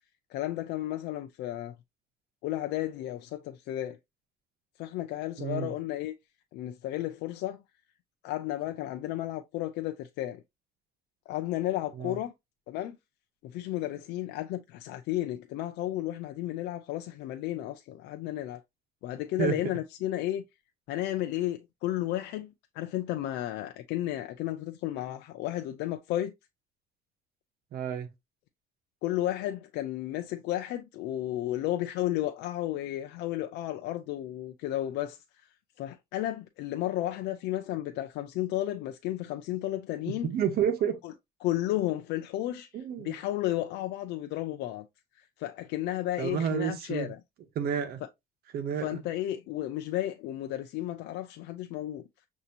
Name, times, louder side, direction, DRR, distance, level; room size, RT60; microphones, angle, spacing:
voice 1, 0.3-1.7 2.4-4.0 4.8-6.1 6.5-7.6 8.2-10.4 11.3-12.3 12.7-13.0 13.4-18.6 19.0-20.4 20.9-26.3 29.0-35.2 35.8-40.3 41.0-41.1 41.4-44.9 45.1-47.2 48.8-52.0, left 14 dB, 85° left, 0.5 m, -33 dB
voice 2, 5.4-5.7 12.0-12.2 19.4-19.6 27.7-28.1 40.2-41.0 42.7-43.1 46.2-47.1 47.6-48.0 48.5-49.0, right 8 dB, 65° right, 1.0 m, -30 dB
6.6 x 2.8 x 2.7 m
cardioid pair, 110°, 17 cm